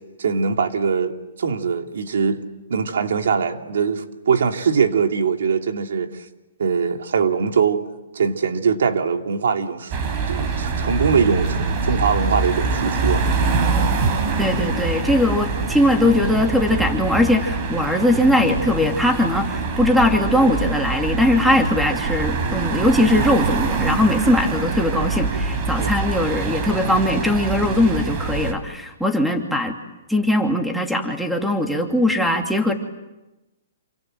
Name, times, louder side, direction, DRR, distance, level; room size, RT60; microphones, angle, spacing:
voice 1, 0.2-2.4 2.7-6.3 6.6-7.8 8.1-9.9 10.3-13.3 25.8-25.9, right 6 dB, 80° right, 2.6 m, -22 dB
sound 1, 9.9-28.5, right 4 dB, 35° right, 4.0 m, -24 dB
voice 2, 14.4-29.7 30.1-32.7, left 1 dB, ahead, 2.7 m, -20 dB
28.5 x 26.5 x 7.7 m
hypercardioid pair, 150°, 0 cm